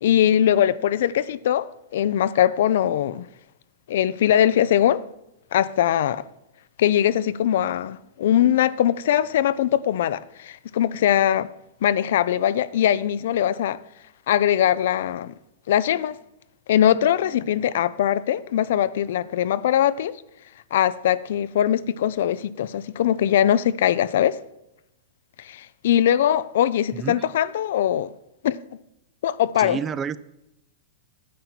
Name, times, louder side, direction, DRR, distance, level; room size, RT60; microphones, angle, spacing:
voice 1, 0.0-3.3 3.9-5.0 5.5-6.2 6.8-11.5 11.8-13.8 14.3-15.3 15.7-16.1 16.7-20.2 20.7-24.4 25.4-28.1 28.4-28.6 29.2-29.8, left 10 dB, 70° left, 0.4 m, -21 dB
voice 2, 26.9-27.2 29.6-30.2, right 7 dB, 25° right, 0.4 m, -29 dB
9.3 x 8.7 x 4.4 m
hypercardioid pair, 125°, 0 cm